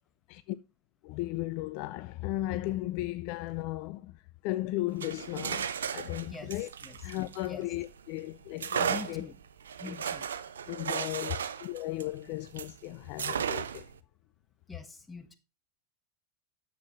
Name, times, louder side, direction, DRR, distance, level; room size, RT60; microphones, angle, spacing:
voice 1, 1.0-4.2 4.4-6.7 7.0-9.3 9.9-10.0 10.7-13.9, left 17 dB, 55° left, 0.4 m, -35 dB
sound 1, 4.9-7.9 8.6-12.8 13.2-14.0, right 8 dB, 80° right, 0.5 m, -35 dB
voice 2, 6.2-7.0 7.4-7.6 8.9-9.3 9.8-10.3 14.7-15.4, left 3 dB, 15° left, 1.4 m, -44 dB
9.4 x 7.5 x 3.1 m
hypercardioid pair, 90°, 0 cm